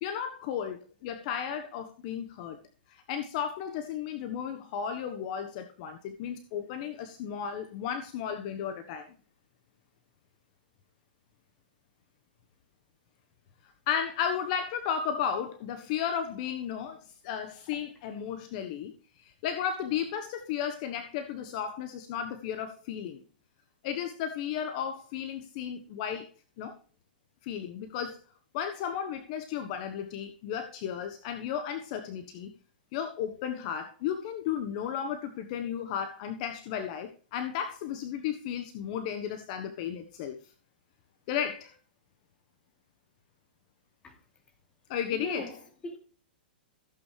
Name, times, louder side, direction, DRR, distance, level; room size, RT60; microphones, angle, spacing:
voice 1, 0.0-2.6 2.9-9.1 13.9-17.0 17.2-18.9 19.2-23.2 23.8-26.3 26.6-26.8 27.4-28.2 28.5-32.5 32.9-40.4 41.3-41.7 44.9-45.5, left 8 dB, 50° left, 1.3 m, -34 dB
voice 2, 45.1-46.0, equal, 20° left, 3.0 m, -40 dB
15.5 x 8.4 x 3.4 m
hypercardioid pair, 125°, 5 cm